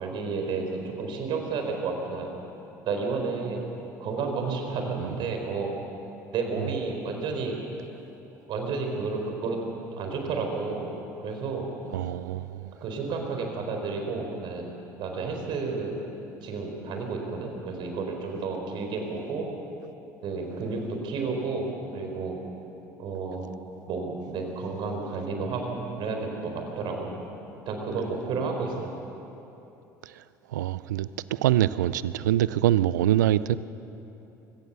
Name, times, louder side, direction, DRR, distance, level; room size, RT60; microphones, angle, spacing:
voice 1, 0.0-2.3 2.8-3.6 4.0-5.7 6.3-7.6 8.5-9.6 9.9-10.9 11.2-11.7 12.8-16.0 16.4-19.5 20.2-21.7 21.9-22.4 23.0-23.5 23.9-27.1 27.7-28.7, right 4 dB, 55° right, 3 dB, 4.4 m, -31 dB
voice 2, 11.9-12.7 30.2-30.3 30.5-33.6, right 13 dB, 80° right, 17 dB, 0.5 m, -24 dB
23.5 x 17.5 x 6.9 m, 3.0 s
hypercardioid pair, 65°, 10 cm